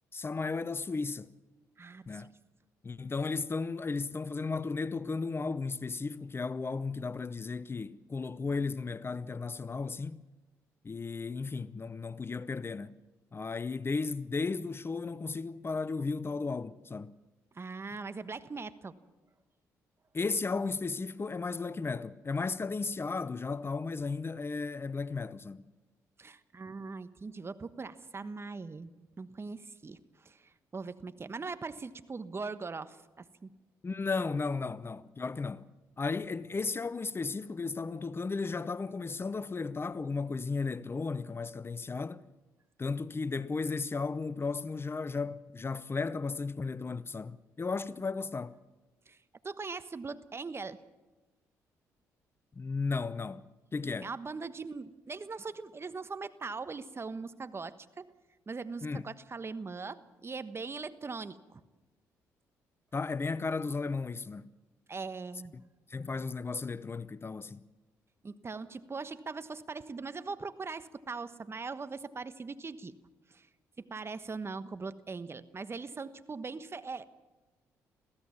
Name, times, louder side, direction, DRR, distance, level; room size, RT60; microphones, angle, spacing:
voice 1, 0.1-1.3 2.1-2.3 2.8-10.2 10.8-13.0 13.3-17.2 20.1-25.7 33.8-35.7 36.0-42.2 42.8-48.6 52.6-53.4 53.7-54.1 58.8-59.0 62.9-64.5 65.5-65.6 65.9-67.7, left 4 dB, 30° left, 0.7 m, -35 dB
voice 2, 1.8-2.2 17.5-18.9 26.2-28.9 29.2-33.5 49.1-49.2 49.4-50.8 54.0-58.1 58.5-61.6 64.9-65.5 68.2-73.0 73.3-73.5 73.8-77.0, right 4 dB, 35° right, 1.2 m, -41 dB
23.0 x 16.0 x 7.3 m
hypercardioid pair, 50°, 8 cm